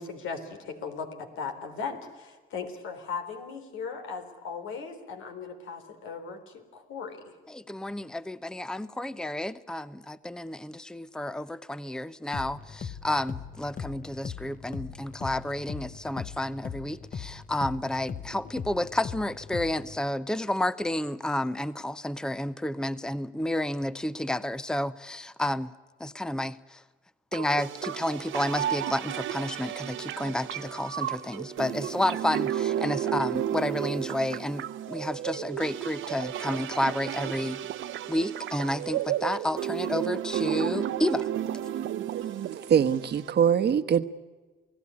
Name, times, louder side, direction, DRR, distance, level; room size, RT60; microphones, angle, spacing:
voice 1, 0.0-7.3, left 5 dB, 85° left, 7 dB, 3.9 m, -38 dB
voice 2, 7.5-25.7 26.0-26.8 27.3-37.6 38.1-41.3, left 1 dB, 5° left, 15 dB, 0.8 m, -31 dB
sound 1, 12.3-20.0, left 6 dB, 45° left, 1.2 m, -39 dB
sound 2, 27.3-43.3, right 11 dB, 80° right, 1.1 m, -32 dB
voice 3, 42.5-44.0, right 8 dB, 55° right, 10 dB, 1.3 m, -23 dB
28.5 x 17.5 x 9.8 m, 1.3 s
cardioid pair, 90°, 20 cm